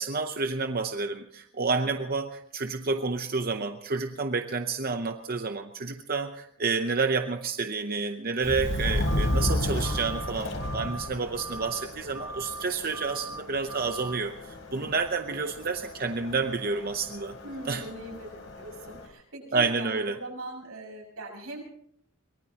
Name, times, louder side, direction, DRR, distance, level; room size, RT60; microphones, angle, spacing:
voice 1, 0.0-17.4 17.7-17.8 19.5-20.2, right 4 dB, 45° right, 6 dB, 0.7 m, -29 dB
Subway metro underground, 8.4-19.1, left 1 dB, 65° left, 3.3 m, -33 dB
sound 1, 9.1-9.5 9.8-10.3 10.6-11.1 11.4-11.9 12.1-12.6 12.9-13.4 13.7-14.2, right 2 dB, 15° right, 1.1 m, -40 dB
voice 2, 17.4-21.6, right 1 dB, 85° right, 0 dB, 6.3 m, -41 dB
23.0 x 20.0 x 2.9 m, 0.68 s
head